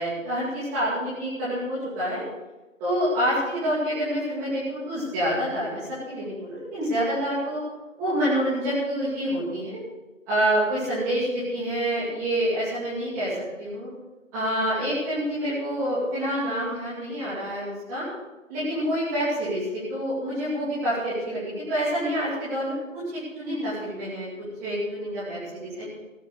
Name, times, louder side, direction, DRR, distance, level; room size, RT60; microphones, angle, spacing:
voice 1, 0.0-2.2 2.8-7.6 8.0-9.8 10.3-13.3 13.6-13.9 14.3-18.0 18.5-22.7 23.1-24.3 24.6-25.8, equal, 5° right, -13 dB, 2.7 m, -27 dB
18.5 x 6.5 x 8.3 m, 1.1 s
figure-of-eight pair, 160°, 40 cm